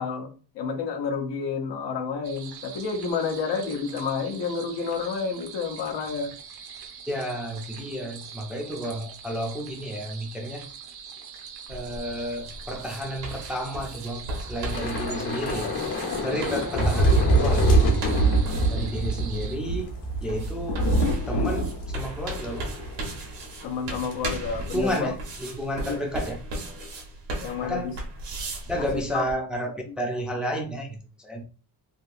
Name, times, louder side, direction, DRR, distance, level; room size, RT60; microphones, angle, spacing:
voice 1, 0.0-6.3 23.6-25.1 25.9-26.0 27.4-27.9 28.8-28.9 29.1-29.2, left 5 dB, 85° left, 0.9 m, -30 dB
sound 1, 2.2-19.6, right 7 dB, 65° right, 0.7 m, -43 dB
voice 2, 7.1-10.7 11.7-15.7 16.2-17.7 18.7-19.9 20.2-20.9 21.3-22.8 24.7-26.4 27.6-28.0 28.7-31.4, equal, ahead, 0.4 m, -31 dB
sound 2, 11.7-29.3, right 1 dB, 80° right, 1.3 m, -37 dB
Thunder / Rain, 14.7-23.3 23.6-23.8 24.1-24.4, right 1 dB, 65° left, 1.2 m, -24 dB
3.4 x 2.7 x 2.5 m
cardioid pair, 140°, 42 cm